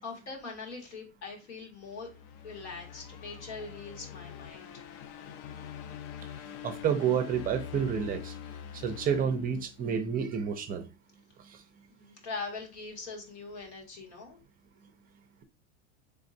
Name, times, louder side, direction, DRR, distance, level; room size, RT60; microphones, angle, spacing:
voice 1, 0.0-2.1 2.4-4.8 11.9-14.4, left 4 dB, 80° left, 2.0 m, -42 dB
sound 1, 1.8-10.1, left 9 dB, 55° left, 0.5 m, -45 dB
voice 2, 6.6-8.3 8.7-10.8, right 7 dB, 25° right, 0.5 m, -29 dB
4.2 x 3.5 x 2.6 m
supercardioid pair, 120°, 35 cm